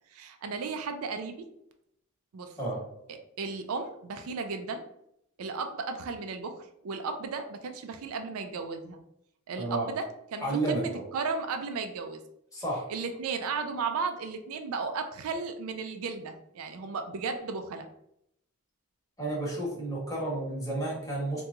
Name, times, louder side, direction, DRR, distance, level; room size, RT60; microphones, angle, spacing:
voice 1, 0.1-1.5 2.3-2.5 3.4-4.9 5.4-9.0 9.5-10.0 10.3-12.2 12.9-17.9, right 4 dB, 70° right, 6 dB, 0.4 m, -35 dB
voice 2, 2.6-2.9 9.6-9.9 10.4-11.0 12.5-12.9 19.2-21.4, right 2 dB, 15° left, -4 dB, 1.1 m, -31 dB
2.9 x 2.3 x 3.6 m, 0.77 s
head